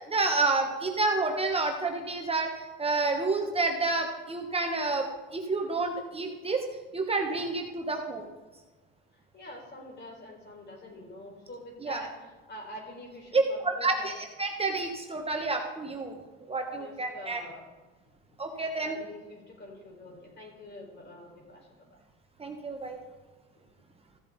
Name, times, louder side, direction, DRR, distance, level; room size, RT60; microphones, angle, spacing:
voice 1, 0.1-6.6 6.9-8.3 11.8-12.1 13.3-17.4 18.4-19.0 22.4-23.0, right 3 dB, 20° right, 3 dB, 1.1 m, -29 dB
voice 2, 9.3-12.1 12.5-13.9 16.7-17.7 18.8-22.0, left 1 dB, 35° left, 1 dB, 4.2 m, -46 dB
15.0 x 7.4 x 4.1 m, 1.3 s
supercardioid pair, 90°, 29 cm